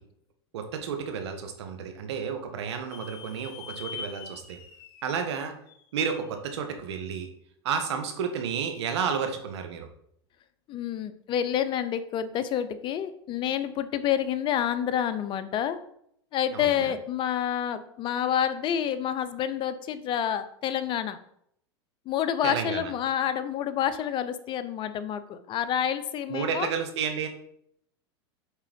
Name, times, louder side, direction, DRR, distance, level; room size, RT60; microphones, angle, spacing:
voice 1, 0.5-4.6 5.0-5.5 5.9-7.3 7.6-9.9 16.5-17.0 22.4-22.9 26.3-27.3, right 6 dB, 75° right, 6 dB, 1.4 m, -31 dB
sound 1, 2.9-6.4, left 7 dB, 60° left, 1.4 m, -44 dB
voice 2, 10.7-15.8 16.3-21.2 22.1-26.7, left 9 dB, 35° left, 12 dB, 0.7 m, -28 dB
8.2 x 3.7 x 5.2 m, 0.70 s
hypercardioid pair, 115°, 14 cm